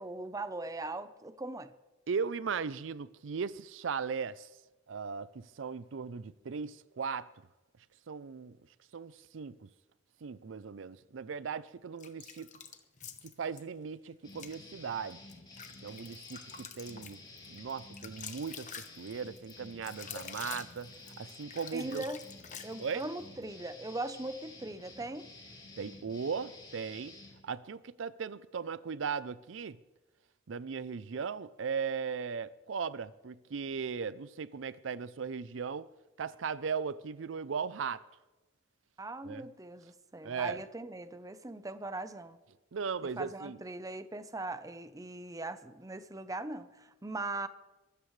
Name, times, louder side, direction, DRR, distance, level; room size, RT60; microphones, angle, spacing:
voice 1, 0.0-1.7 21.7-22.2 22.6-25.3 39.0-42.4 43.2-47.5, right 2 dB, 20° right, 0.7 m, -40 dB
voice 2, 2.1-4.5 4.9-7.3 8.1-8.6 8.9-9.7 10.2-12.5 13.4-15.2 15.8-17.2 17.5-18.7 19.0-20.9 21.2-22.0 22.8-23.1 25.8-27.1 27.4-29.8 30.5-35.9 36.2-38.0 39.3-39.4 40.2-40.6 42.7-43.6, right 6 dB, 70° right, 0.5 m, -37 dB
sound 1, 12.0-13.6 14.3-14.6 15.1-23.1, left 7 dB, 40° left, 1.1 m, -47 dB
sound 2, 14.2-27.4, left 2 dB, 25° left, 4.0 m, -52 dB
23.5 x 13.5 x 3.2 m
head